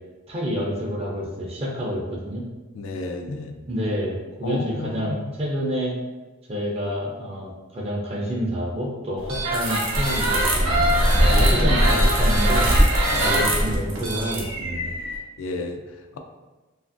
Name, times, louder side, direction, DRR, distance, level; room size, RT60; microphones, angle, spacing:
voice 1, 0.3-2.4 3.7-6.0 6.5-10.9 11.3-12.7 13.2-14.9, equal, 30° right, -2 dB, 0.4 m, -28 dB
voice 2, 2.7-3.5 4.4-5.1 11.3-11.5 13.1-13.8 15.4-15.8, left 3 dB, 75° left, 4 dB, 0.3 m, -31 dB
sound 1, 9.2-15.2, right 1 dB, 85° right, 0.7 m, -20 dB
2.8 x 2.4 x 2.5 m, 1.2 s
head